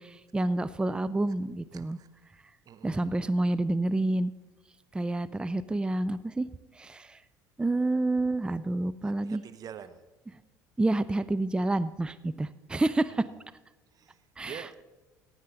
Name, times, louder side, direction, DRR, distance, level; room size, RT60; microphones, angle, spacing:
voice 1, 0.0-2.0 2.8-4.3 4.9-6.5 6.8-7.2 7.6-9.4 10.8-13.2 14.4-14.5, right 2 dB, 10° right, 15 dB, 0.4 m, -28 dB
voice 2, 1.7-2.1 2.7-3.2 9.0-10.0 13.1-13.4 13.9-14.8, right 8 dB, 45° right, 11 dB, 0.8 m, -47 dB
15.5 x 9.5 x 3.9 m, 1.1 s
hypercardioid pair, 65°, 9 cm